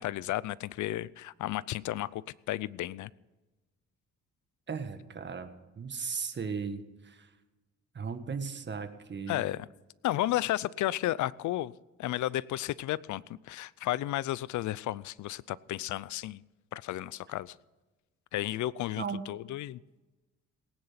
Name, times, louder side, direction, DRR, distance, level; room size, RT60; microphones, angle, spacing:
voice 1, 0.0-3.1 9.3-9.7 10.0-11.7 12.0-16.4 16.7-17.6 18.3-19.8, left 15 dB, 75° left, 22 dB, 0.6 m, -33 dB
voice 2, 4.7-5.5 5.8-7.3 7.9-9.4 19.0-19.2, right 5 dB, 35° right, 8 dB, 1.7 m, -36 dB
18.5 x 9.7 x 5.8 m, 1.1 s
cardioid pair, 90°, 30 cm